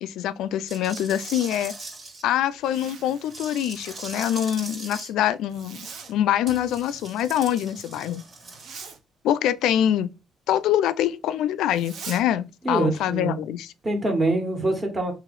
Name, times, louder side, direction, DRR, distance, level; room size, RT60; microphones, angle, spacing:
voice 1, 0.0-1.7 2.2-8.2 9.2-10.1 10.5-13.7, left 11 dB, 90° left, 0.3 m, -24 dB
sound 1, 0.7-2.2 3.3-5.1 6.5-8.6, right 2 dB, 50° right, 2.0 m, -39 dB
Zipper (clothing), 2.4-3.5 5.5-6.1 8.4-9.0 11.7-12.2, right 5 dB, 70° right, 0.9 m, -41 dB
voice 2, 12.6-13.4 13.8-15.1, right 2 dB, 30° right, 1.5 m, -24 dB
3.2 x 3.1 x 3.7 m
cardioid pair, 90°, 0 cm